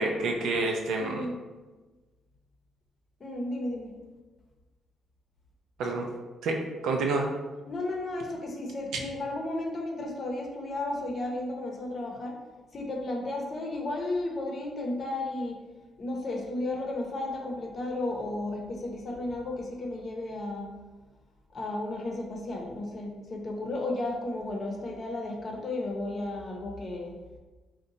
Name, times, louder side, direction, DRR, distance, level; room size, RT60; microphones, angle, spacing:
voice 1, 0.0-1.3 5.8-6.1 6.4-7.3, right 3 dB, 80° right, 2 dB, 0.5 m, -28 dB
voice 2, 1.0-1.3 3.2-3.9 7.7-12.4 12.7-15.6 16.0-20.7 21.5-27.2, left 2 dB, 45° left, 1 dB, 0.7 m, -33 dB
2.7 x 2.2 x 3.9 m, 1.3 s
cardioid pair, 90°, 0 cm